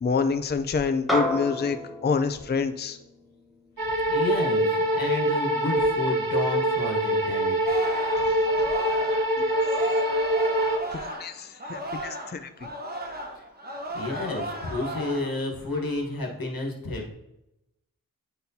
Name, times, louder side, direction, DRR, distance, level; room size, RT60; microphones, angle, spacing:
voice 1, 0.0-3.0 8.3-8.4 9.4-9.5 10.9-12.5, left 5 dB, 30° left, 9 dB, 0.4 m, -27 dB
sound 1, 1.1-5.7, left 1 dB, ahead, 1.0 m, -33 dB
sound 2, 3.8-10.8, right 1 dB, 80° right, 0.8 m, -24 dB
voice 2, 4.1-7.6 13.3-13.4 13.9-17.1, left 2 dB, 85° left, 0 dB, 1.3 m, -31 dB
Singing, 7.7-12.3 12.6-15.4 15.8-16.2, equal, 25° right, 1.1 m, -35 dB
9.5 x 4.1 x 2.7 m, 0.89 s
wide cardioid pair, 65°, 34 cm